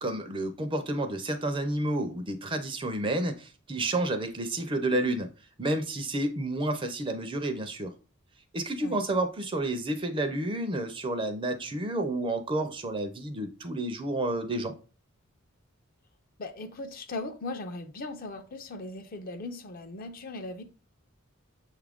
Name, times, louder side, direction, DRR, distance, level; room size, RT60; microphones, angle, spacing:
voice 1, 0.0-5.3 5.6-7.9 8.5-14.7, right 1 dB, 25° right, 0.4 m, -30 dB
voice 2, 16.4-20.6, left 2 dB, 45° left, 0.5 m, -38 dB
6.3 x 2.4 x 3.4 m
head